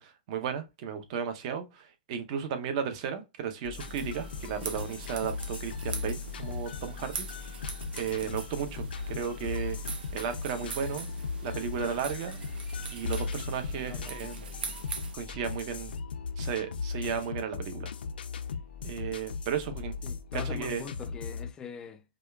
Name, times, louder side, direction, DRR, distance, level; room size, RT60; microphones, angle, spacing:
voice 1, 0.0-7.5 8.0-11.1 11.4-12.4 12.9-14.5 15.1-15.9 16.4-17.9 18.8-19.9 20.3-20.9, right 7 dB, 45° right, 0.7 m, -34 dB
sound 1, 3.6-21.5, left 5 dB, 85° left, 0.5 m, -38 dB
sound 2, 3.8-15.2, right 5 dB, 80° right, 0.9 m, -43 dB
voice 2, 13.7-14.2 20.0-22.0, left 6 dB, 15° left, 0.4 m, -43 dB
4.9 x 2.3 x 2.3 m
hypercardioid pair, 145°, 5 cm